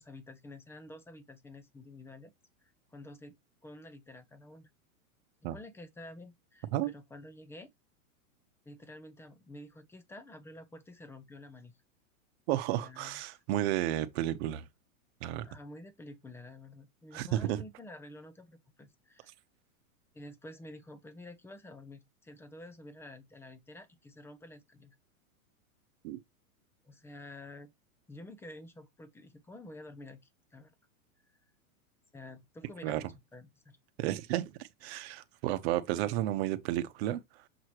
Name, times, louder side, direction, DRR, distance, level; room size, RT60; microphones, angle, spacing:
voice 1, 0.0-2.3 2.6-3.4 3.6-4.7 5.4-7.7 8.7-11.7 12.8-13.4 15.4-19.3 20.1-24.9 26.8-27.7 28.1-30.2 30.5-30.7 31.3-31.4 32.1-33.0 33.3-33.8, left 1 dB, 5° left, 0.6 m, -50 dB
voice 2, 12.5-14.7 15.2-15.5 17.1-17.6 26.0-26.2 32.8-33.0 34.0-37.4, right 14 dB, 45° right, 1.1 m, -32 dB
7.2 x 4.8 x 3.0 m
supercardioid pair, 145°, 43 cm